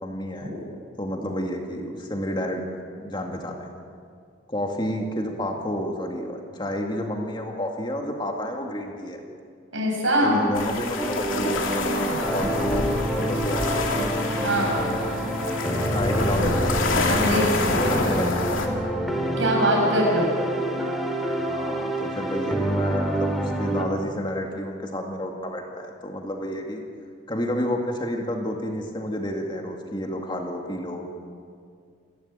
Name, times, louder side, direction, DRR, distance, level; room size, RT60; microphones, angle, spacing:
voice 1, 0.0-0.5 1.0-2.6 3.0-3.7 4.5-9.2 10.2-13.8 14.6-15.3 15.9-16.7 17.6-18.4 20.4-20.7 21.5-26.8 27.3-31.1, equal, 25° left, 2 dB, 2.2 m, -30 dB
voice 2, 9.7-10.4 14.4-14.7 17.1-17.5 19.4-20.3, right 1 dB, 80° right, -1 dB, 7.6 m, -22 dB
sound 1, 10.5-18.7, left 3 dB, 90° left, 2.7 m, -28 dB
sound 2, 11.0-23.9, right 1 dB, ahead, 2.4 m, -27 dB
29.0 x 12.5 x 9.1 m, 2.2 s
head